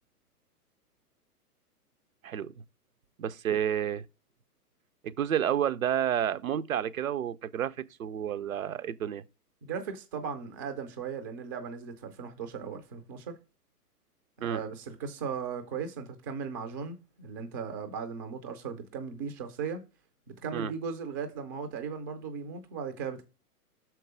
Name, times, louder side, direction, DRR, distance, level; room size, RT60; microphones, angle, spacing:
voice 1, 3.2-4.0 5.0-7.7 8.0-9.2 14.4-14.6 20.5-20.7, right 10 dB, 60° right, 0.7 m, -30 dB
voice 2, 9.6-13.4 14.4-19.8 20.4-23.2, right 6 dB, 15° right, 0.4 m, -37 dB
6.5 x 4.6 x 4.9 m
figure-of-eight pair, 115°, 46 cm